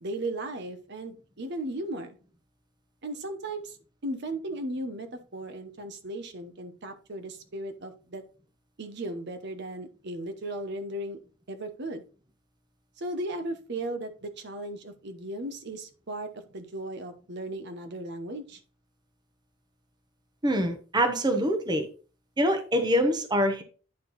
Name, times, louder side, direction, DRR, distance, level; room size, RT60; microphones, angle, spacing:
voice 1, 0.0-2.2 3.0-3.8 4.0-8.2 8.8-11.2 11.5-12.0 13.0-18.6, right 1 dB, 55° right, 8 dB, 0.9 m, -36 dB
voice 2, 20.4-21.9 22.4-23.6, equal, 20° right, 7 dB, 0.9 m, -25 dB
9.6 x 4.4 x 4.0 m, 0.36 s
head